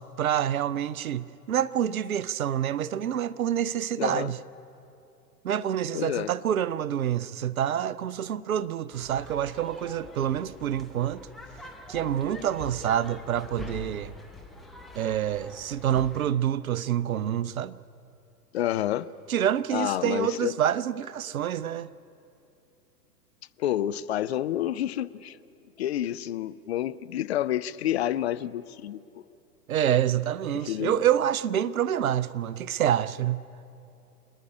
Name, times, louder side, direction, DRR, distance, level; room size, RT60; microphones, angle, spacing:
voice 1, 0.0-4.4 5.4-11.3 11.9-14.1 15.0-17.8 19.3-21.9 29.7-33.4, right 10 dB, 60° right, 0.6 m, -27 dB
voice 2, 4.0-4.3 5.9-6.3 18.5-19.1 19.7-20.5 23.6-25.4 25.8-29.2 30.7-31.0, left 12 dB, 40° left, 0.6 m, -29 dB
sound 1, 8.9-16.3, left 2 dB, ahead, 0.6 m, -44 dB
27.5 x 10.0 x 9.9 m
figure-of-eight pair, 110°, 49 cm